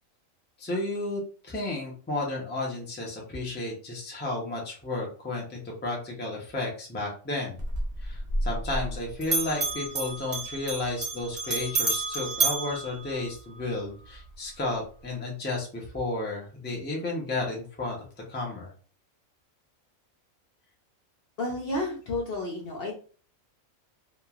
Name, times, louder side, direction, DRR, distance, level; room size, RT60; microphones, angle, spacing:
voice 1, 0.6-7.6 8.0-18.0 18.3-18.7, left 2 dB, 10° left, -2 dB, 0.5 m, -32 dB
Bell, 7.6-9.0 9.2-13.7, right 3 dB, 40° right, 0.8 m, -30 dB
voice 2, 21.4-22.9, left 2 dB, 55° left, -2 dB, 0.8 m, -31 dB
3.0 x 2.4 x 2.4 m, 0.40 s
omnidirectional pair, 1.4 m